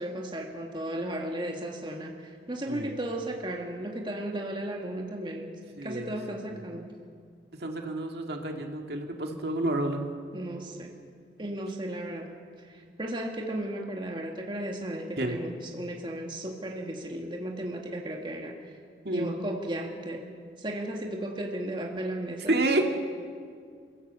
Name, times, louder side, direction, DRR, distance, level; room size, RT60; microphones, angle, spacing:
voice 1, 0.0-5.6 5.8-6.9 10.3-10.9 11.4-12.3 12.6-18.5 19.1-20.3 20.6-22.6, right 1 dB, 25° right, 1 dB, 1.8 m, -35 dB
voice 2, 5.8-6.1 6.5-6.6 7.6-10.0 15.2-15.4 19.0-19.3 22.5-22.9, right 2 dB, 65° right, 3 dB, 2.3 m, -29 dB
28.0 x 14.5 x 8.3 m, 2.1 s
head